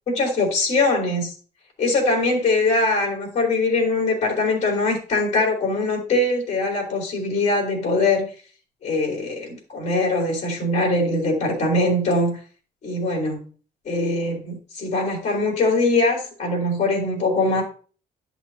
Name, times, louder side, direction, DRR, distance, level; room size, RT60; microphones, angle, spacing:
voice 1, 0.1-1.3 1.8-8.3 8.8-12.4 12.8-13.4 13.9-17.6, left 2 dB, 40° left, 0 dB, 3.4 m, -22 dB
11.5 x 6.0 x 2.8 m, 0.39 s
cardioid pair, 170°, 17 cm